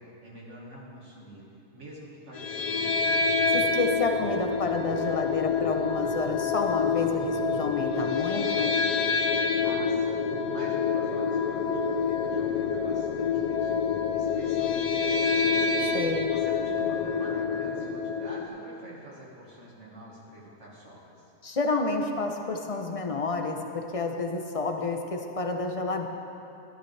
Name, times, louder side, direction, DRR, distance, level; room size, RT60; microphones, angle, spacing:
voice 1, 0.0-1.4 1.7-3.1 9.6-10.2 10.5-15.6 16.3-21.3, equal, 65° right, -5 dB, 2.0 m, -46 dB
sound 1, 2.3-18.5, left 5 dB, 80° left, 0.3 m, -27 dB
voice 2, 3.5-8.8 15.9-16.3 21.4-26.1, left 3 dB, 35° left, 4 dB, 0.6 m, -30 dB
13.0 x 12.0 x 3.3 m, 2.8 s
omnidirectional pair, 1.4 m